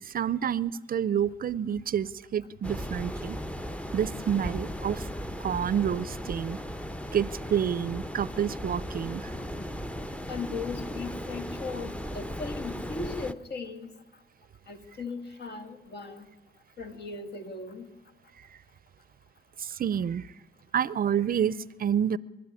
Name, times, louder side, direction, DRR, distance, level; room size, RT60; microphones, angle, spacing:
voice 1, 0.0-3.4 3.9-5.1 5.4-6.6 7.1-9.3 19.6-20.3 20.7-22.2, right 8 dB, 45° right, 0.6 m, -28 dB
sound 1, 2.6-13.3, equal, 5° left, 0.8 m, -36 dB
voice 2, 10.3-13.9 14.7-16.3 16.8-17.9, left 4 dB, 60° left, 2.4 m, -38 dB
25.0 x 12.5 x 9.8 m
cardioid pair, 90°, 20 cm